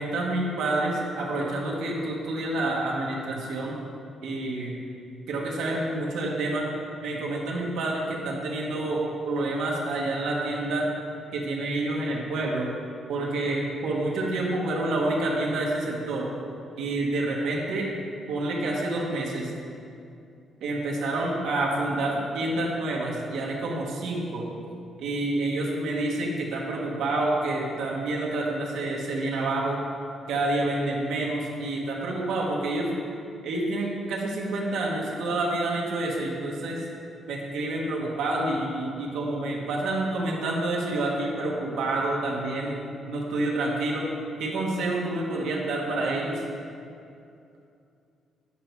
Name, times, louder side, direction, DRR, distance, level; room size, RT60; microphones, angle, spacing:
voice 1, 0.0-3.8 4.2-4.8 5.3-6.7 7.0-10.9 11.3-12.8 13.1-16.3 16.8-17.9 18.3-19.5 20.6-24.5 25.0-29.8 30.3-32.9 33.4-36.8 37.3-42.8 43.1-44.1 44.4-46.4, right 2 dB, 80° right, -2 dB, 1.3 m, -28 dB
8.8 x 5.4 x 4.6 m, 2.5 s
cardioid pair, 155°, 0 cm